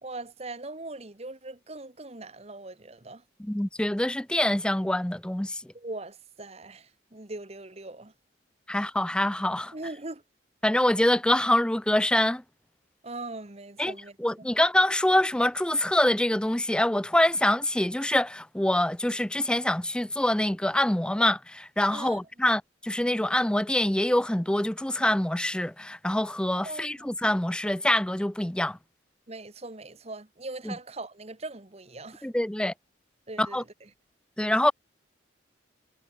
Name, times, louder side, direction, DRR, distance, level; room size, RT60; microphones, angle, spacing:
voice 1, 0.0-3.2 5.7-8.1 9.7-10.2 13.0-14.5 21.9-22.2 26.6-27.1 29.3-32.3 33.3-33.9, right 2 dB, 35° right, 1.3 m, -40 dB
voice 2, 3.4-5.7 8.7-9.7 10.6-12.4 13.8-28.8 30.7-30.8 32.2-32.7 33.4-33.6 34.4-34.7, left 1 dB, 5° left, 0.4 m, -25 dB
head